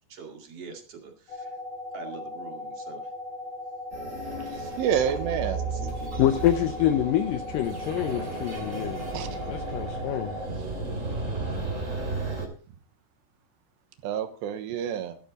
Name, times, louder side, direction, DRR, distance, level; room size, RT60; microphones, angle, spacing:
voice 1, 0.1-1.6 1.9-3.1 4.4-4.6 5.7-6.3, right 5 dB, 45° right, 2.6 m, -44 dB
sound 1, 1.3-10.5, left 2 dB, 60° left, 2.0 m, -38 dB
sound 2, 3.9-12.5, right 3 dB, 20° right, 2.8 m, -34 dB
voice 2, 4.5-5.6 9.1-9.3 14.0-15.2, right 8 dB, 90° right, 3.4 m, -28 dB
voice 3, 6.2-9.2 9.5-10.4, left 12 dB, 85° left, 1.9 m, -26 dB
14.0 x 12.0 x 4.1 m
omnidirectional pair, 4.8 m